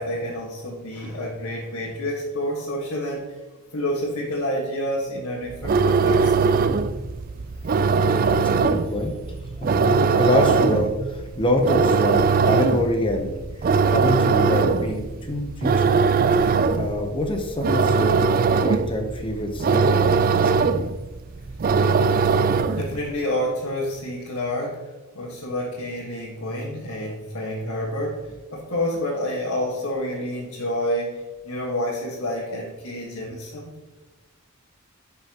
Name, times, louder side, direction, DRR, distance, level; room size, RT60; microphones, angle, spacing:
voice 1, 0.0-3.3 3.7-6.5 22.2-33.7, left 1 dB, 70° left, -4 dB, 1.5 m, -29 dB
sound 1, 5.5-23.0, right 5 dB, 40° right, 0.3 m, -21 dB
voice 2, 8.1-9.1 9.6-13.3 13.6-15.9 16.4-18.3 18.6-20.5, left 1 dB, 25° left, 3 dB, 0.8 m, -26 dB
11.0 x 5.7 x 2.9 m, 1.2 s
head